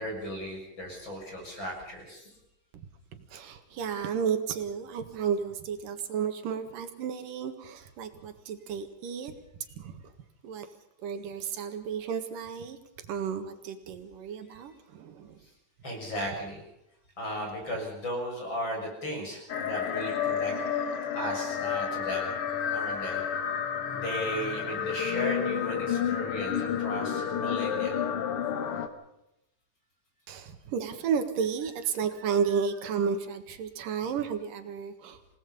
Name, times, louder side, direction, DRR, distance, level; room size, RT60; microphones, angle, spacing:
voice 1, 0.0-2.3 14.5-14.6 15.4-15.5 15.8-16.6 17.2-20.5 21.1-22.3 22.7-23.2 23.9-28.0, equal, 35° left, 1 dB, 7.1 m, -36 dB
voice 2, 3.1-9.3 9.8-10.1 10.4-10.7 11.0-12.8 13.1-15.4 30.3-35.4, right 6 dB, 85° right, 8 dB, 3.3 m, -32 dB
sound 1, 19.5-28.9, left 8 dB, 55° left, 1.8 m, -30 dB
27.5 x 18.5 x 5.5 m, 0.86 s
omnidirectional pair, 3.8 m